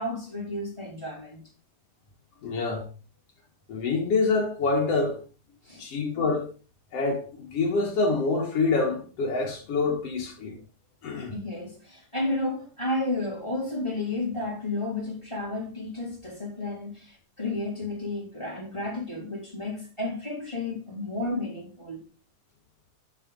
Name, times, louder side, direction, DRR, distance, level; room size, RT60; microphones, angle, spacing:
voice 1, 0.0-1.4 5.6-5.8 11.3-22.0, left 2 dB, 10° left, 1.8 m, -32 dB
voice 2, 2.4-2.9 3.7-5.2 5.8-6.5 6.9-10.6 11.0-11.3, left 3 dB, 55° left, 2.3 m, -26 dB
9.1 x 4.4 x 3.8 m
omnidirectional pair, 3.9 m